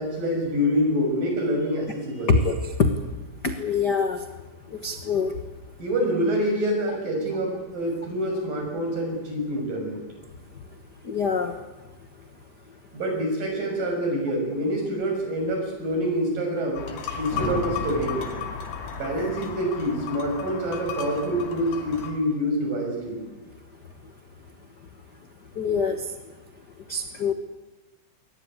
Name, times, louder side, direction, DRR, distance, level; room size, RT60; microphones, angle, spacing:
voice 1, 0.0-2.3 5.8-10.0 12.9-16.9 17.2-18.3 18.9-23.2, equal, 70° right, 2 dB, 8.0 m, -26 dB
voice 2, 2.3-2.9 3.4-4.2 4.7-5.4 11.0-11.5 17.1-17.2 25.5-26.1 26.9-27.3, left 4 dB, 60° left, 7 dB, 1.0 m, -24 dB
sound 1, 16.7-22.1, left 6 dB, 85° left, 4.3 m, -35 dB
sound 2, 17.3-19.3, left 3 dB, 40° left, 2.4 m, -34 dB
21.5 x 19.0 x 9.9 m, 1.1 s
omnidirectional pair, 4.1 m